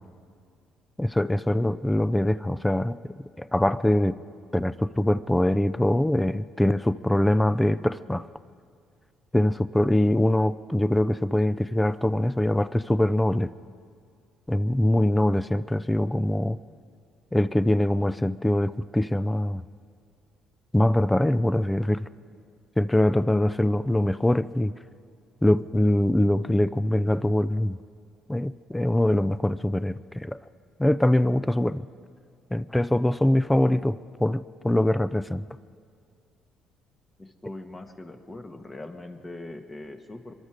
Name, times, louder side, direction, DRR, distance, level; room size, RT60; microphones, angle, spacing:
voice 1, 1.0-3.0 3.4-4.2 4.5-8.3 9.3-13.5 14.5-16.6 17.3-19.6 20.7-22.1 22.8-24.7 25.4-27.8 28.3-30.4 30.8-31.8 32.5-35.4, left 1 dB, 10° left, 16 dB, 0.5 m, -23 dB
voice 2, 37.2-40.3, left 2 dB, 25° left, 6 dB, 1.6 m, -41 dB
23.5 x 12.5 x 5.0 m, 2.2 s
supercardioid pair, 65°, 0 cm